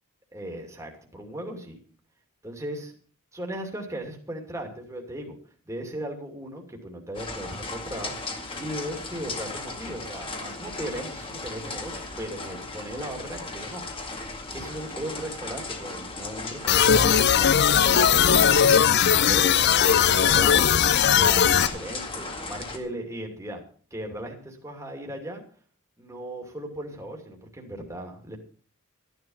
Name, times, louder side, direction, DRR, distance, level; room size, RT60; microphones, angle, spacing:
voice 1, 0.3-1.8 2.4-2.9 3.3-5.4 5.7-8.1 8.6-23.6 23.9-25.4 26.0-28.4, right 1 dB, 15° right, 1 dB, 2.6 m, -37 dB
sound 1, 7.1-22.8, left 3 dB, 25° left, 2.0 m, -36 dB
sound 2, 16.7-21.7, left 8 dB, 50° left, 0.5 m, -19 dB
14.0 x 10.5 x 5.5 m, 0.42 s
head